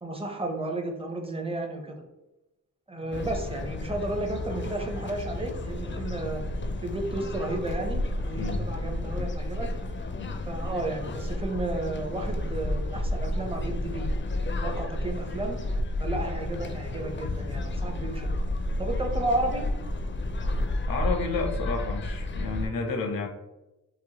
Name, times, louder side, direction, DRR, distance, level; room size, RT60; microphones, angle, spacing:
voice 1, 0.0-2.0 2.9-6.4 6.8-9.7 10.5-14.1 14.6-15.6 16.0-18.3 18.8-19.7, right 2 dB, 15° right, 2 dB, 0.6 m, -32 dB
sound 1, 3.1-22.7, left 1 dB, 35° left, 0.4 m, -31 dB
voice 2, 8.4-8.7 10.1-10.4 20.9-23.3, left 4 dB, 80° left, 3 dB, 0.6 m, -31 dB
3.0 x 2.1 x 2.8 m, 0.97 s
cardioid pair, 45°, 33 cm